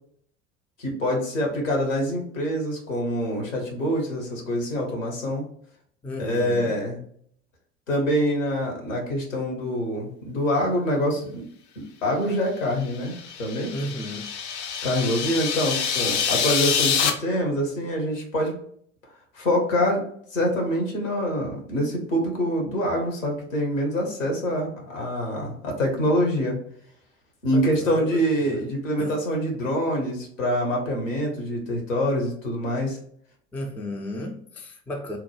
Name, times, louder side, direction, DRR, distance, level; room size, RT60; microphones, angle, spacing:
voice 1, 0.8-5.5 6.2-7.0 7.9-11.5 12.0-13.7 14.8-18.5 19.3-20.0 20.3-26.6 27.4-33.0, equal, 80° left, 1 dB, 1.0 m, -25 dB
voice 2, 6.0-6.8 13.7-14.2 27.5-28.1 28.4-28.7 29.0-29.2 33.5-35.2, left 1 dB, 5° left, 1 dB, 0.3 m, -34 dB
sound 1, 12.9-17.1, left 7 dB, 60° left, 0.6 m, -26 dB
2.9 x 2.1 x 2.9 m, 0.64 s
figure-of-eight pair, 60°, 38 cm